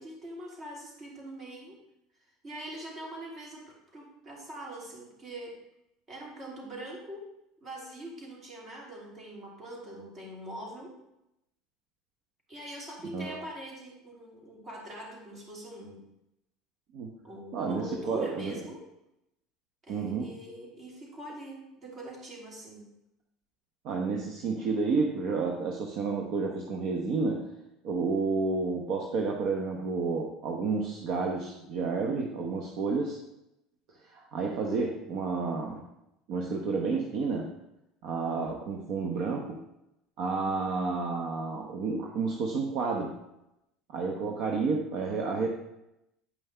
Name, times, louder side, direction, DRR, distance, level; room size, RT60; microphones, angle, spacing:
voice 1, 0.0-1.8 2.4-5.6 6.1-7.3 7.6-10.9 12.5-16.0 17.2-18.8 19.8-22.9, right 1 dB, 35° right, -2 dB, 2.8 m, -43 dB
voice 2, 17.5-18.6 19.9-20.3 23.8-27.5 27.8-33.2 34.1-35.8 36.3-37.5 38.0-39.6 40.2-43.2 43.9-45.5, right 4 dB, 60° right, 1 dB, 0.9 m, -30 dB
8.5 x 5.5 x 3.4 m, 0.86 s
supercardioid pair, 100°, 0 cm